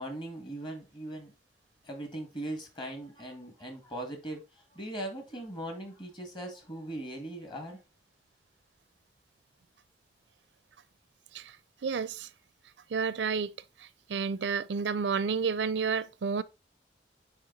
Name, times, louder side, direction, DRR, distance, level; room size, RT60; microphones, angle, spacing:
voice 1, 0.0-1.3 1.8-4.4 4.7-7.8, right 1 dB, 30° left, 2.2 m, -39 dB
voice 2, 11.8-12.3 12.9-13.5 14.1-16.4, right 5 dB, 85° right, 0.5 m, -30 dB
9.5 x 3.3 x 4.1 m
head